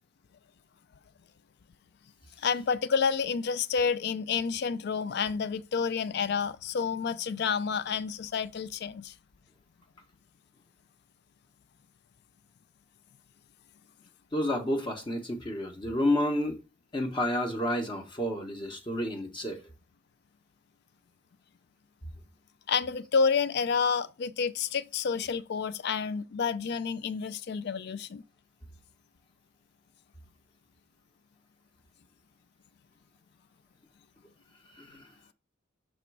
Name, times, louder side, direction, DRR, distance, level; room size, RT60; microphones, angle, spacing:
voice 1, 2.4-9.1 22.7-28.2, left 6 dB, 55° left, 0.4 m, -29 dB
voice 2, 14.3-16.6 16.9-19.6 34.8-35.0, left 1 dB, 25° left, 0.8 m, -30 dB
7.1 x 3.0 x 4.6 m
head